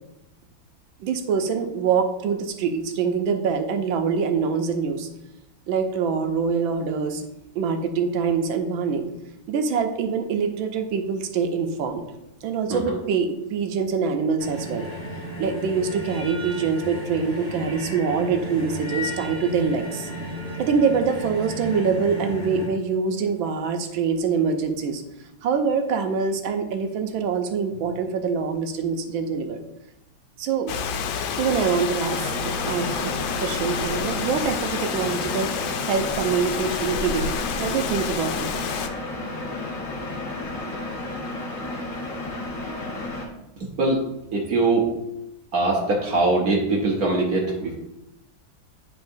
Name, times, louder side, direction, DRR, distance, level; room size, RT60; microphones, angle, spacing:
voice 1, 1.0-5.1 5.7-7.3 7.5-9.1 9.5-12.1 12.4-14.9 15.4-20.1 20.6-25.0 25.4-29.6 30.4-30.7 31.4-38.8, right 5 dB, 85° right, 5 dB, 1.5 m, -25 dB
sound 1, 14.4-22.7, equal, 5° right, 2.3 m, -33 dB
Rain, 30.7-38.9, left 6 dB, 80° left, 1.3 m, -29 dB
sound 2, 32.1-43.3, left 2 dB, 45° left, 1.5 m, -32 dB
voice 2, 43.6-44.9 45.5-47.7, right 2 dB, 60° right, 0 dB, 1.1 m, -22 dB
10.5 x 3.7 x 2.6 m, 0.89 s
omnidirectional pair, 2.1 m